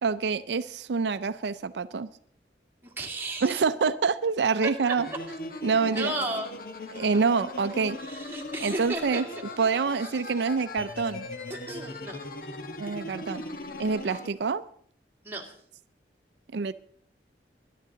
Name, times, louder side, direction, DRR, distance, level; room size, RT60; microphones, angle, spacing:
voice 1, 0.0-2.1 3.4-5.1 5.6-6.1 6.9-8.0 8.6-9.3 9.6-11.3 12.8-13.4 13.8-14.6 16.5-16.7, right 5 dB, 75° right, 11 dB, 0.4 m, -26 dB
voice 2, 2.8-3.6 4.8-4.9 5.9-6.5 8.0-9.2 10.0-10.1 11.5-12.3 15.2-15.5, right 2 dB, 15° right, 1 dB, 2.0 m, -34 dB
sound 1, 5.0-14.3, left 2 dB, 55° left, 1.2 m, -39 dB
21.5 x 11.0 x 3.8 m, 0.65 s
head